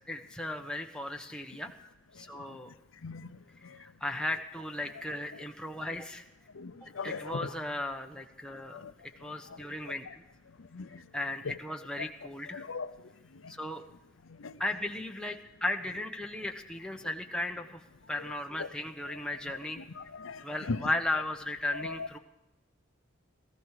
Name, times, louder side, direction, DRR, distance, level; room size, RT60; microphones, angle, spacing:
voice 1, 0.1-1.7 2.1-2.7 3.8-6.2 6.8-8.9 9.2-10.0 11.1-12.6 13.5-13.8 14.6-17.8 18.1-19.8 20.4-22.2, left 1 dB, 5° left, 3 dB, 1.0 m, -36 dB
voice 2, 2.1-2.6 3.0-3.9 5.3-5.4 6.5-7.5 8.7-8.9 9.2-10.2 10.6-11.1 11.4-11.6 12.0-12.1 12.5-13.5 14.2-14.6 17.0-17.1 18.2-18.7 19.0-20.9 21.7-22.2, left 4 dB, 85° left, 12 dB, 0.6 m, -41 dB
18.0 x 15.5 x 4.9 m, 0.97 s
head